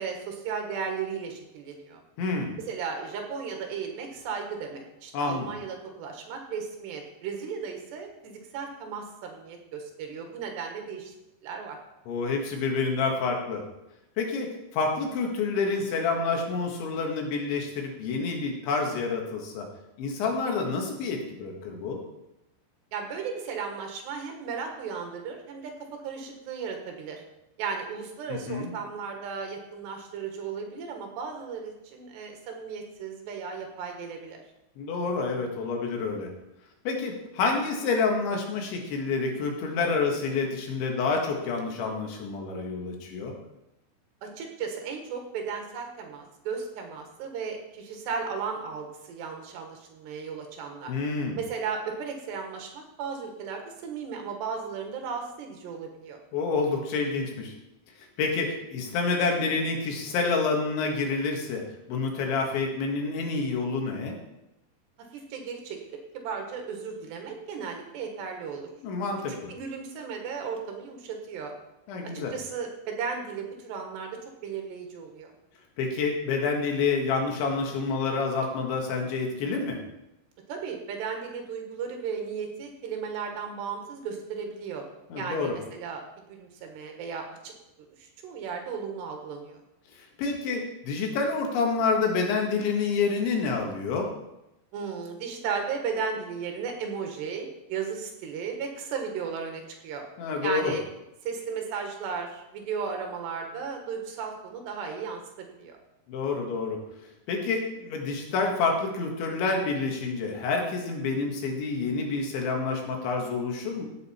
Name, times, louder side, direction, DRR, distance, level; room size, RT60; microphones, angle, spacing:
voice 1, 0.0-2.0 2.6-11.2 11.4-11.8 22.9-25.7 26.0-27.2 27.6-34.4 44.2-50.9 51.4-56.2 65.1-68.7 69.3-71.5 72.3-75.3 80.5-84.8 85.2-86.0 86.3-87.5 88.0-89.6 94.7-100.1 100.4-100.9 101.2-105.8, right 6 dB, 75° right, 3 dB, 3.7 m, -35 dB
voice 2, 2.2-2.6 5.1-5.5 12.1-13.6 14.2-19.7 20.0-22.0 28.3-28.7 34.8-36.3 36.9-43.3 50.9-51.4 56.3-57.5 58.2-61.6 61.9-64.2 68.8-69.5 71.9-72.3 75.8-79.8 85.1-85.6 90.2-94.1 100.2-100.7 106.1-106.8 107.3-113.9, left 4 dB, 85° left, 1 dB, 4.2 m, -28 dB
16.0 x 7.8 x 4.4 m, 0.90 s
omnidirectional pair, 5.1 m